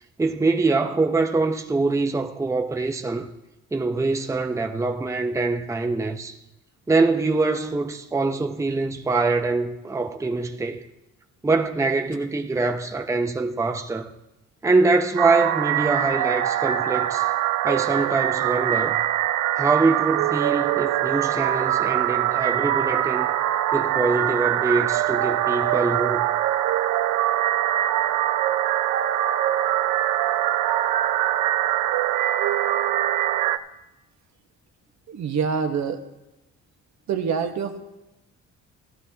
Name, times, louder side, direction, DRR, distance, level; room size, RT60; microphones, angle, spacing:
voice 1, 0.2-3.3 3.7-6.4 6.9-10.8 11.4-14.1 14.6-17.3 17.6-19.0 19.5-23.3 23.7-26.3, right 3 dB, 10° right, 0.7 m, -24 dB
sound 1, 15.2-33.6, right 12 dB, 85° right, 0.5 m, -23 dB
voice 2, 35.1-36.0 37.1-37.8, right 6 dB, 65° right, 1.2 m, -25 dB
14.5 x 12.0 x 2.8 m
cardioid pair, 90°, 30 cm